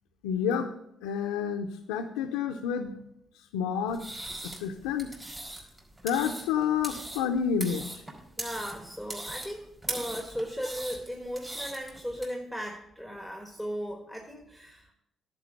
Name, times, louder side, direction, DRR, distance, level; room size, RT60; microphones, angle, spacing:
voice 1, 0.2-0.7 1.0-2.9 3.5-4.1 4.4-5.1 6.0-8.0, left 7 dB, 90° left, 2 dB, 0.6 m, -29 dB
sound 1, 3.9-12.2, right 1 dB, 25° right, 4.1 m, -40 dB
voice 2, 8.4-14.9, equal, 5° right, 2 dB, 1.5 m, -37 dB
10.5 x 4.9 x 8.1 m, 0.78 s
hypercardioid pair, 55°, 0 cm